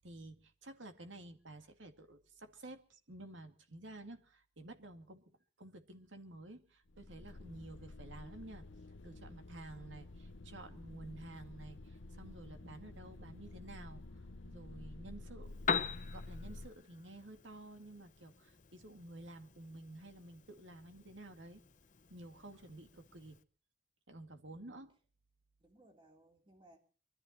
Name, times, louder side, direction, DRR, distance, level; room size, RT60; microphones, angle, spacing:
voice 1, 0.0-5.2 5.6-8.7 9.0-14.0 14.4-15.8 16.1-21.6 22.1-23.4 24.1-24.9, right 2 dB, 85° right, 7 dB, 2.3 m, -52 dB
sound 1, 6.9-16.7, left 2 dB, 85° left, 0.9 m, -51 dB
Piano, 15.4-23.4, left 6 dB, 40° left, 0.9 m, -44 dB
voice 2, 25.6-26.8, right 1 dB, 25° right, 4 dB, 3.1 m, -65 dB
24.0 x 13.5 x 4.2 m, 0.40 s
head